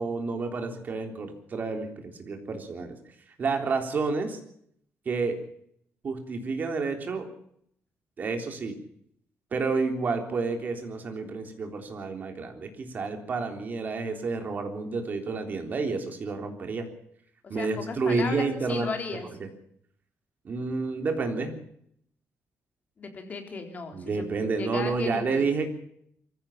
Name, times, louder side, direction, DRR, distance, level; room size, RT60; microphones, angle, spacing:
voice 1, 0.0-3.0 3.4-4.4 5.1-5.4 6.0-7.3 8.2-8.8 9.5-16.9 17.5-18.9 19.4-19.5 20.4-21.6 23.9-25.7, right 4 dB, 35° right, 5 dB, 3.6 m, -30 dB
voice 2, 17.4-19.3 23.0-24.3 24.6-25.5, left 4 dB, 35° left, 5 dB, 3.9 m, -36 dB
23.5 x 15.5 x 7.2 m, 0.69 s
cardioid pair, 165°, 5 cm